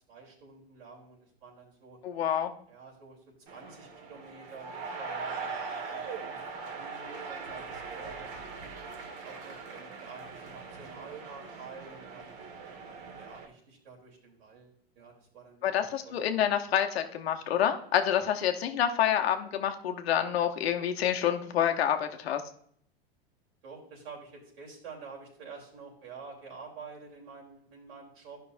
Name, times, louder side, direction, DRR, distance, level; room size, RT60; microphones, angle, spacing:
voice 1, 0.1-2.0 2.7-3.2 3.5-8.8 9.2-12.3 13.1-15.7 15.9-16.2 23.6-28.4, right 4 dB, 75° right, -2 dB, 3.3 m, -49 dB
voice 2, 2.0-2.5 15.6-22.4, left 9 dB, 80° left, 5 dB, 1.0 m, -28 dB
sound 1, 3.5-13.5, right 5 dB, 50° right, 1.6 m, -41 dB
12.0 x 5.6 x 2.6 m, 0.65 s
hypercardioid pair, 105°, 30 cm